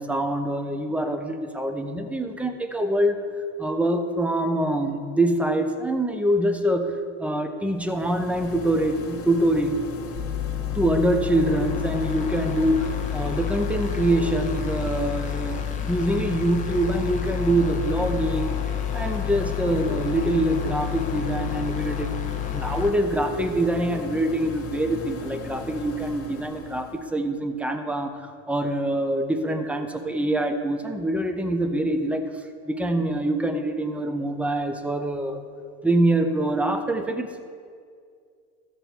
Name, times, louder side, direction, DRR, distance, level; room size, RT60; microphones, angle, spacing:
voice 1, 0.0-3.3 3.6-6.9 7.2-9.8 10.7-15.6 15.9-18.5 18.9-22.1 22.5-32.2 32.7-35.4 35.8-37.4, right 1 dB, 5° right, 7 dB, 0.7 m, -25 dB
sound 1, 7.7-27.1, left 5 dB, 35° left, 1.4 m, -38 dB
sound 2, 10.1-22.9, left 10 dB, 20° left, 1.1 m, -30 dB
13.5 x 7.0 x 4.4 m, 2.2 s
supercardioid pair, 110°, 39 cm